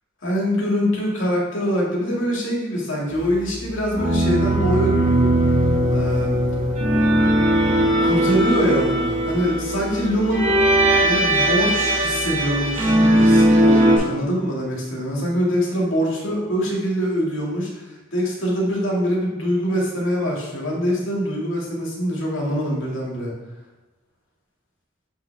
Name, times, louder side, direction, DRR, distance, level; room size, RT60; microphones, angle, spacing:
voice 1, 0.2-5.2 5.9-6.4 8.0-10.7 11.0-23.3, equal, 70° left, -3 dB, 2.2 m, -24 dB
sound 1, 3.9-14.0, right 1 dB, 35° right, 1.6 m, -19 dB
7.0 x 5.5 x 3.4 m, 1.2 s
head